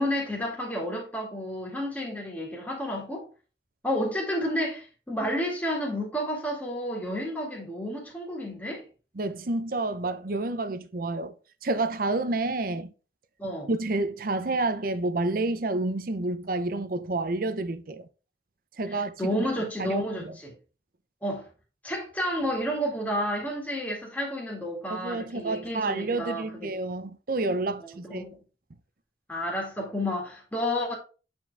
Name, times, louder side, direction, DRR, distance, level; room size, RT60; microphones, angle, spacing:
voice 1, 0.0-3.3 3.8-8.8 13.4-13.7 18.9-20.5 21.2-21.5 21.8-26.7 28.0-28.4 29.3-30.9, equal, 10° left, 2.3 m, -31 dB
voice 2, 9.2-11.3 11.6-12.9 13.7-18.1 18.8-19.4 19.8-20.4 24.9-28.2, right 2 dB, 55° right, 0.7 m, -29 dB
8.6 x 4.5 x 3.4 m
head